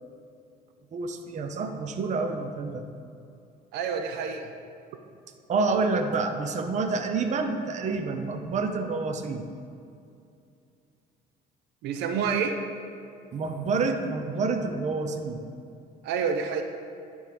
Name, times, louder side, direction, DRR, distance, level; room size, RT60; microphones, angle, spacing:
voice 1, 0.9-2.8 5.5-9.4 13.3-15.4, right 4 dB, 45° right, 6 dB, 0.7 m, -28 dB
voice 2, 3.7-4.5 11.8-12.6 16.0-16.6, right 6 dB, 85° right, 6 dB, 0.6 m, -28 dB
10.5 x 3.6 x 5.1 m, 2.5 s
cardioid pair, 110°, 17 cm